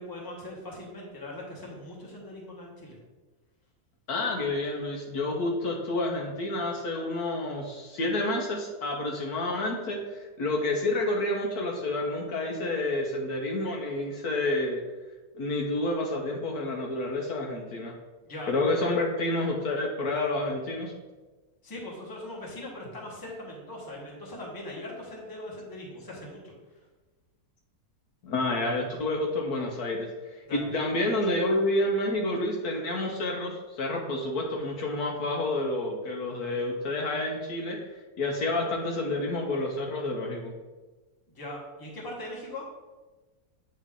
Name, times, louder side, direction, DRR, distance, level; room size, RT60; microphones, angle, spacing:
voice 1, 0.0-3.0 18.2-18.5 21.6-26.8 30.5-30.7 41.3-42.6, left 1 dB, 15° left, -4 dB, 1.1 m, -40 dB
voice 2, 4.1-14.8 15.3-17.9 18.5-20.9 28.2-37.8 38.2-40.5, left 2 dB, 65° left, 0 dB, 1.2 m, -29 dB
8.5 x 3.3 x 3.6 m, 1.2 s
omnidirectional pair, 1.8 m